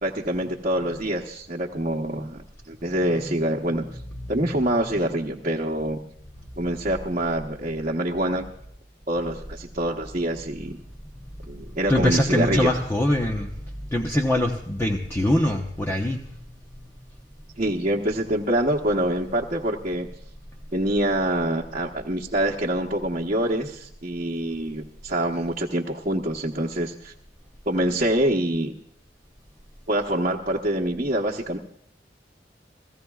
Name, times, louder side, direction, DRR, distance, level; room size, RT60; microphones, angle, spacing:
voice 1, 0.0-2.4 2.7-3.8 4.3-6.0 6.6-8.4 9.1-10.8 11.4-12.7 17.6-20.1 20.7-27.1 27.7-28.7 29.9-31.6, right 1 dB, 45° right, -2 dB, 1.1 m, -25 dB
voice 2, 4.2-4.6 11.9-13.5 13.9-16.2, left 1 dB, 15° left, 1 dB, 1.0 m, -23 dB
29.0 x 16.0 x 2.4 m, 0.68 s
head